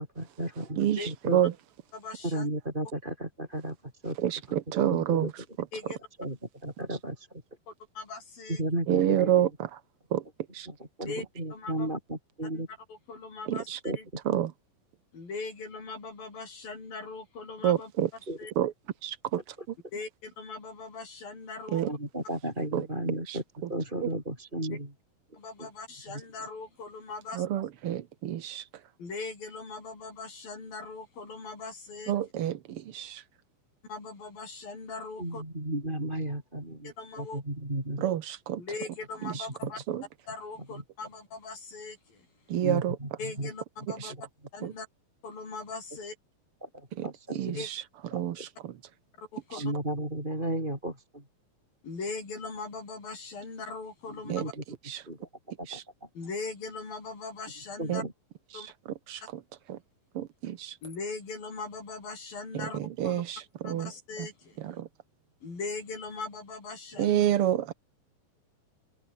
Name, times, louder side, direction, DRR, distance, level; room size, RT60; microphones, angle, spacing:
voice 1, 0.0-1.4 2.2-4.2 4.9-5.3 6.2-7.4 8.5-9.4 10.7-12.7 13.8-14.0 18.3-18.4 21.9-23.4 23.7-24.9 25.6-25.7 26.1-26.2 35.2-38.0 40.7-40.8 42.6-43.5 44.1-44.2 46.6-47.6 48.1-48.5 49.6-51.2 54.1-54.6 55.1-55.3 55.6-56.1 57.8-58.1, right 1 dB, 10° right, 6.4 m, -34 dB
voice 2, 0.8-1.5 4.2-5.3 8.9-9.8 10.1-10.2 10.5-10.7 13.5-13.8 14.2-14.5 17.6-18.1 18.6-18.7 19.0-19.5 21.7-21.9 22.7-22.9 23.3-23.4 24.0-24.1 27.3-28.7 32.1-33.2 38.0-38.6 39.2-39.5 39.9-40.0 42.5-43.0 43.9-44.1 44.6-44.7 47.0-48.7 49.5-49.6 54.3-54.4 54.8-55.0 55.7-55.8 57.9-58.0 58.5-58.7 59.1-59.4 59.7-59.8 60.1-60.8 62.5-63.9 64.2-64.3 64.6-64.9 67.0-67.7, right 11 dB, 90° right, 1.2 m, -29 dB
voice 3, 1.9-2.5 5.7-6.0 7.7-8.6 11.1-11.2 11.5-11.9 12.5-12.6 12.9-13.7 14.0-14.1 15.1-17.9 18.4-18.5 19.9-21.8 25.3-27.4 29.0-32.1 33.9-35.4 36.8-37.4 38.6-39.8 40.3-42.3 43.2-44.1 44.5-44.9 45.2-46.1 47.6-47.7 49.2-49.6 51.8-54.5 56.2-58.0 58.5-58.7 60.8-63.2 63.6-64.6 65.4-67.2, left 3 dB, 70° left, 9.6 m, -40 dB
open air
omnidirectional pair, 4.2 m